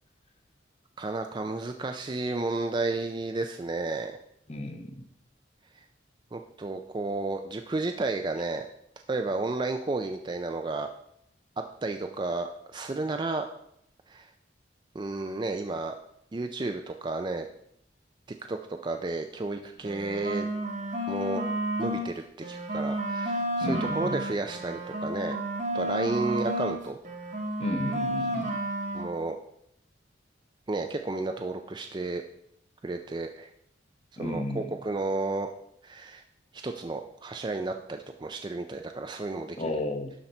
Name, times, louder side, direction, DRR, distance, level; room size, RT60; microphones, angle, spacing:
voice 1, 1.0-4.2 6.3-8.7 9.1-10.9 11.8-13.5 14.1-14.3 14.9-15.9 16.3-17.5 18.5-20.5 21.1-21.4 21.8-25.4 25.7-27.0 28.9-29.4 30.7-32.2 32.8-33.5 34.1-35.5 35.8-36.2 36.5-39.7, right 3 dB, 25° right, 5 dB, 0.4 m, -32 dB
voice 2, 4.5-5.0 23.6-24.2 27.6-28.5 34.2-34.7 39.6-40.1, left 1 dB, 35° left, 6 dB, 0.8 m, -32 dB
sound 1, 19.8-22.1 22.4-26.8 27.0-29.1, right 1 dB, 40° right, 1.1 m, -31 dB
11.5 x 4.1 x 4.3 m, 0.72 s
head